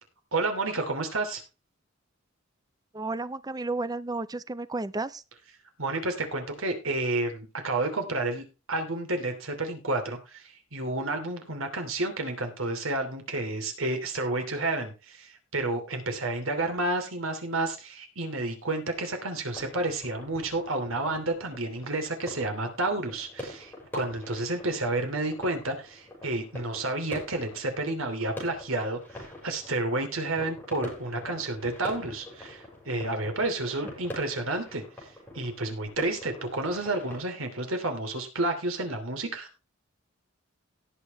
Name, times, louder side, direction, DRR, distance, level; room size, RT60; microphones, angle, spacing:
voice 1, 0.3-1.4 5.8-39.5, right 2 dB, 75° right, 5 dB, 3.0 m, -30 dB
voice 2, 2.9-5.2, right 2 dB, 20° right, 15 dB, 0.6 m, -32 dB
sound 1, 19.5-37.2, left 1 dB, 10° left, 5.6 m, -44 dB
17.5 x 6.8 x 3.1 m, 0.30 s
head